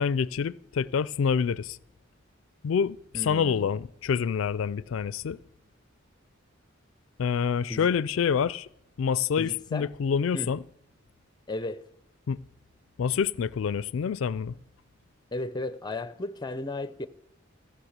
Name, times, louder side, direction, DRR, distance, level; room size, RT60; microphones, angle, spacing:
voice 1, 0.0-1.8 2.6-3.0 3.2-5.4 7.2-8.7 9.0-10.6 12.3-12.4 13.0-14.5, left 6 dB, 75° left, 0.4 m, -27 dB
voice 2, 3.1-3.8 7.7-7.9 9.4-9.9 10.3-10.5 11.5-11.9 15.3-17.1, left 2 dB, 20° left, 0.5 m, -35 dB
15.0 x 6.5 x 8.0 m
head